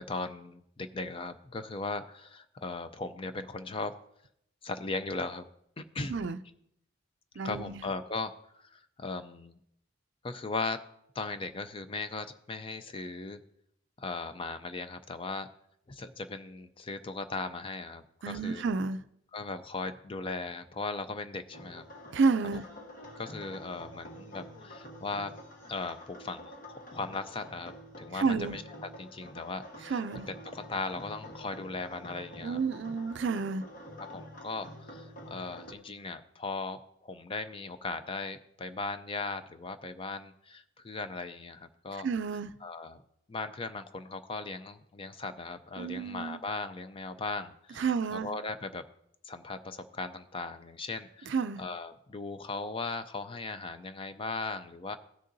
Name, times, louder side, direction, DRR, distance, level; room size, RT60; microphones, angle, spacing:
voice 1, 0.0-3.9 4.6-5.5 5.8-6.2 7.4-8.3 8.6-9.5 10.2-10.8 11.1-13.4 14.0-15.5 15.9-18.6 19.3-21.8 23.2-25.3 25.7-30.0 30.3-32.6 34.1-42.1 42.6-43.0 43.3-47.8 48.1-48.8 49.2-55.0, left 3 dB, 25° left, 10 dB, 0.4 m, -38 dB
voice 2, 7.4-7.8 18.2-19.0 22.1-22.7 28.1-28.6 29.8-30.3 32.4-33.6 42.0-42.5 45.8-46.4 47.8-48.3 51.3-51.6, right 4 dB, 60° right, 12 dB, 0.4 m, -30 dB
sound 1, 21.5-35.7, left 1 dB, 40° left, 1.1 m, -48 dB
16.5 x 6.5 x 2.6 m, 0.74 s
head